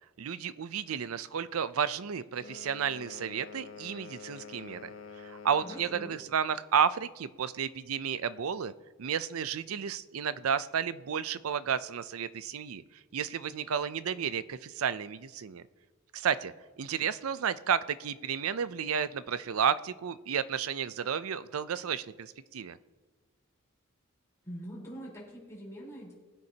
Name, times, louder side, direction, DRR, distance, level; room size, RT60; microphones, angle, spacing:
voice 1, 0.2-4.9 5.2-8.7 9.0-12.8 13.1-15.6 16.1-22.8, right 7 dB, 85° right, 15 dB, 0.5 m, -32 dB
sound 1, 2.3-6.2, left 5 dB, 70° left, 0.9 m, -47 dB
voice 2, 5.6-6.2 24.4-26.1, equal, 15° left, -6 dB, 4.0 m, -44 dB
20.5 x 9.5 x 2.8 m, 1.3 s
head